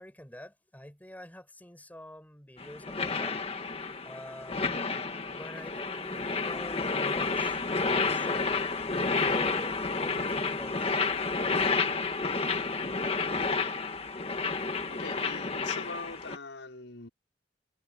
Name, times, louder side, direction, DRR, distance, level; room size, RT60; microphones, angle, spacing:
voice 1, 0.0-3.4 4.0-4.7 5.3-8.5 9.2-11.1, equal, 10° left, 7.9 m, -46 dB
sound 1, 2.6-16.4, left 4 dB, 35° left, 1.8 m, -30 dB
voice 2, 14.9-17.1, left 3 dB, 80° left, 5.9 m, -42 dB
head